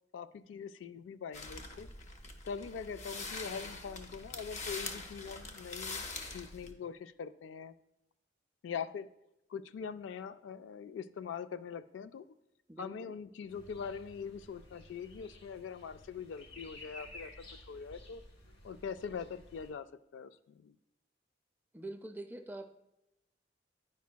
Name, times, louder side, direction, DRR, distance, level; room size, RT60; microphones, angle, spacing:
voice 1, 0.1-1.9 2.4-6.0 6.3-7.7 8.6-9.1 9.5-12.3 12.8-18.2 18.6-20.8, left 6 dB, 85° left, 11 dB, 0.3 m, -43 dB
sound 1, 1.3-6.7, left 3 dB, 40° left, 0.6 m, -44 dB
voice 2, 12.7-13.1 21.7-22.7, right 2 dB, 10° right, 7 dB, 0.4 m, -45 dB
sound 2, 13.5-19.7, left 1 dB, 60° left, 0.9 m, -54 dB
9.2 x 5.2 x 2.2 m, 0.89 s
head